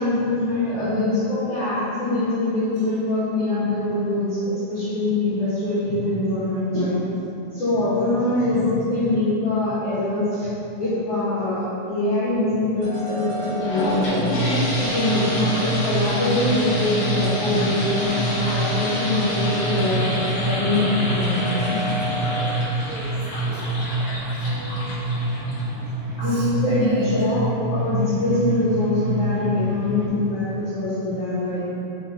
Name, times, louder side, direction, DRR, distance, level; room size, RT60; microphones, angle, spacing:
voice 1, 0.0-7.0 7.5-10.5 10.8-13.3 13.5-14.3 14.8-22.1 26.2-27.5 27.7-31.6, left 2 dB, 80° left, -13 dB, 1.1 m, -23 dB
sound 1, 12.8-22.4, left 1 dB, 55° right, 2.4 m, -32 dB
sound 2, 13.4-25.9, left 1 dB, 60° left, 1.7 m, -29 dB
sound 3, 14.1-30.1, right 2 dB, 90° right, 1.7 m, -27 dB
voice 2, 18.7-19.2 22.8-23.8 24.4-25.5 26.2-26.5 26.8-27.3, right 2 dB, 75° right, -6 dB, 2.3 m, -40 dB
5.6 x 4.1 x 4.2 m, 2.9 s
omnidirectional pair, 4.6 m